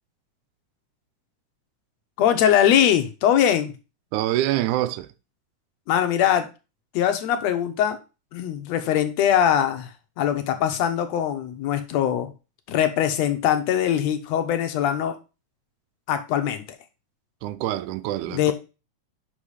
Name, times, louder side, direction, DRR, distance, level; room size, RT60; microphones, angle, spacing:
voice 1, 2.2-3.7 5.9-6.5 6.9-8.0 8.3-12.3 12.7-15.2 16.1-16.6 18.3-18.5, left 10 dB, 70° left, 1.9 m, -22 dB
voice 2, 4.1-5.1 17.4-18.5, right 14 dB, 80° right, 2.0 m, -25 dB
5.7 x 5.6 x 4.9 m
omnidirectional pair, 3.6 m